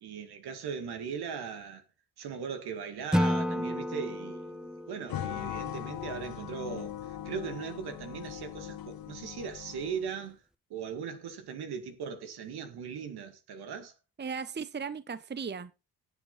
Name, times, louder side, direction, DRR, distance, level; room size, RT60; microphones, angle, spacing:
voice 1, 0.0-1.8 2.2-10.4 10.7-13.9, right 6 dB, 70° right, 2.2 m, -39 dB
Acoustic guitar / Strum, 3.1-6.3, equal, ahead, 0.8 m, -32 dB
sound 1, 5.1-10.2, left 11 dB, 60° left, 1.1 m, -40 dB
voice 2, 14.2-15.8, right 6 dB, 25° right, 0.9 m, -37 dB
17.5 x 7.3 x 4.0 m
hypercardioid pair, 40°, 41 cm